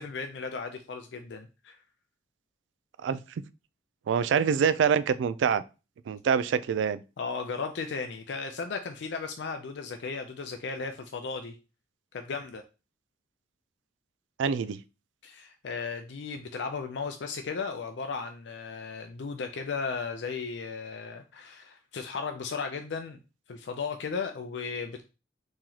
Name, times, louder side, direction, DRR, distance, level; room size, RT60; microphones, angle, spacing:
voice 1, 0.0-1.8 7.2-11.6 12.1-12.6 15.2-23.2 23.5-25.0, left 5 dB, 75° left, 0.4 m, -35 dB
voice 2, 4.1-5.6 6.1-7.0 14.4-14.8, right 7 dB, 85° right, 0.3 m, -25 dB
3.8 x 3.0 x 2.8 m
head